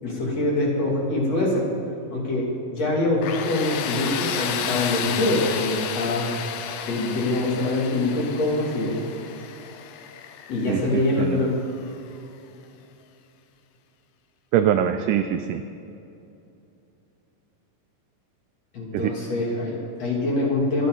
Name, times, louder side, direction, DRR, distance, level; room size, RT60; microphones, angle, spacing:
voice 1, 0.0-1.7 2.1-6.4 6.9-9.0 10.5-11.5 18.7-20.9, left 2 dB, 45° left, -3 dB, 3.6 m, -24 dB
Tools, 3.2-12.0, left 8 dB, 75° left, 2.2 m, -32 dB
voice 2, 10.7-11.4 14.5-15.6 18.9-19.1, right 10 dB, 80° right, 8 dB, 1.9 m, -23 dB
26.0 x 10.5 x 4.0 m, 2.7 s
omnidirectional pair, 4.2 m